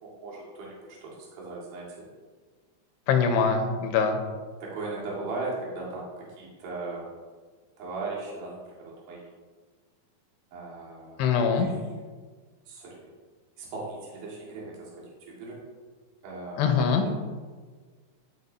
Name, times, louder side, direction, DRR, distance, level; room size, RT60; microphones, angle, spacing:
voice 1, 0.0-2.1 4.6-7.1 7.8-9.3 10.5-11.3 11.6-11.7 12.7-13.1 13.6-15.6 16.2-17.1, right 3 dB, 70° right, -5 dB, 3.6 m, -38 dB
voice 2, 3.1-4.2 11.2-11.7 16.6-17.0, left 6 dB, 90° left, 4 dB, 3.0 m, -23 dB
12.5 x 5.8 x 2.7 m, 1.4 s
omnidirectional pair, 4.7 m